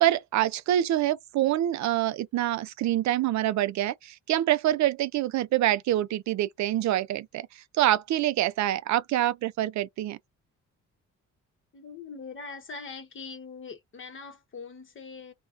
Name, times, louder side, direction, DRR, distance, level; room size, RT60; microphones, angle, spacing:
voice 1, 0.0-7.5 7.8-10.2, right 13 dB, 65° right, 0.5 m, -26 dB
voice 2, 11.7-15.3, left 4 dB, 40° left, 1.1 m, -42 dB
2.2 x 2.1 x 3.8 m
cardioid pair, 90°, 30 cm